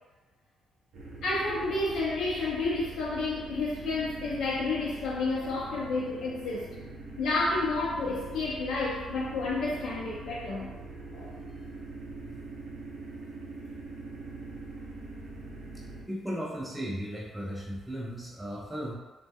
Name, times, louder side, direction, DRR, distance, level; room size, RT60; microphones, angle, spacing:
sound 1, 0.9-16.0, right 2 dB, 70° right, 0.5 m, -43 dB
voice 1, 1.2-6.7 7.2-10.7 11.1-11.3, left 3 dB, 85° left, -5 dB, 0.4 m, -30 dB
voice 2, 15.7-18.9, equal, 5° right, -4 dB, 0.5 m, -36 dB
2.1 x 2.0 x 3.4 m, 1.2 s
cardioid pair, 90°, 0 cm